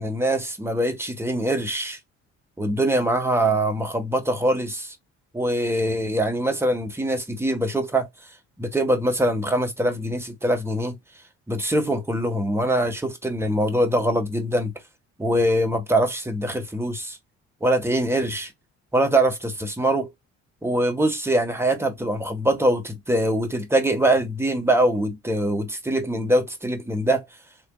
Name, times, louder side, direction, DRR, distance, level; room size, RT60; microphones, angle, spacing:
voice 1, 0.0-2.0 2.6-4.9 5.3-8.1 8.6-11.0 11.5-14.7 15.2-17.2 17.6-18.5 18.9-20.1 20.6-27.2, right 1 dB, 10° right, 1.3 m, -23 dB
4.4 x 3.3 x 2.3 m
cardioid pair, 90°, 30 cm